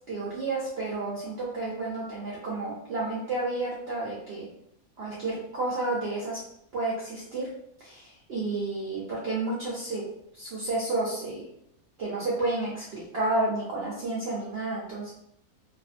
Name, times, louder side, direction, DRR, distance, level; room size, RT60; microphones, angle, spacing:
voice 1, 0.0-4.5 5.0-6.4 6.7-7.5 7.8-10.0 10.3-11.4 12.0-15.1, right 2 dB, 60° right, -5 dB, 0.7 m, -31 dB
2.6 x 2.5 x 2.4 m, 0.77 s
omnidirectional pair, 1.6 m